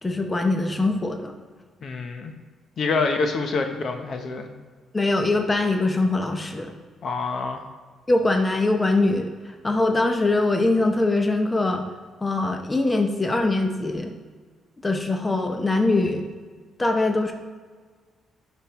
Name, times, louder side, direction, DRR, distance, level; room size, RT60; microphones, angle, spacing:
voice 1, 0.0-1.3 4.9-6.7 8.1-11.9 12.2-14.1 14.8-16.3 16.8-17.3, left 2 dB, 20° left, 4 dB, 0.7 m, -22 dB
voice 2, 1.8-2.3 2.8-4.5 7.0-7.6, left 4 dB, 55° left, 5 dB, 0.8 m, -26 dB
11.0 x 5.2 x 3.1 m, 1.5 s
cardioid pair, 90°, 0 cm